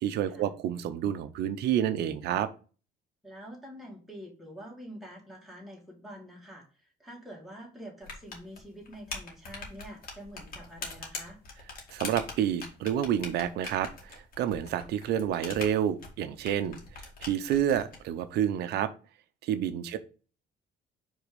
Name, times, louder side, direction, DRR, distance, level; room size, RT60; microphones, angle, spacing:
voice 1, 0.0-2.5 11.9-13.9 14.4-16.8 17.2-18.9 19.4-20.0, right 10 dB, 75° right, 11 dB, 0.7 m, -29 dB
voice 2, 3.2-11.4 19.9-20.0, equal, ahead, -3 dB, 2.3 m, -46 dB
sound 1, 8.0-18.0, left 4 dB, 60° left, 2.1 m, -42 dB
5.0 x 3.7 x 5.2 m, 0.36 s
cardioid pair, 110°, 17 cm